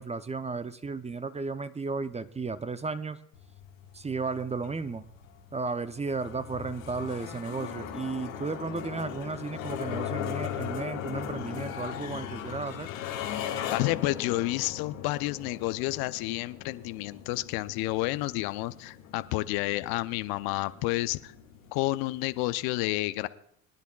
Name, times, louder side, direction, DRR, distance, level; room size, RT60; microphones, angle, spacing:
voice 1, 0.0-3.2 3.9-5.1 5.5-12.9, right 4 dB, 15° right, 13 dB, 0.6 m, -34 dB
sound 1, 3.3-22.6, left 9 dB, 75° left, 1.8 m, -39 dB
voice 2, 13.7-21.3 21.7-23.3, left 18 dB, 60° left, 15 dB, 0.6 m, -30 dB
24.0 x 10.5 x 2.3 m, 0.70 s
hypercardioid pair, 60°, 41 cm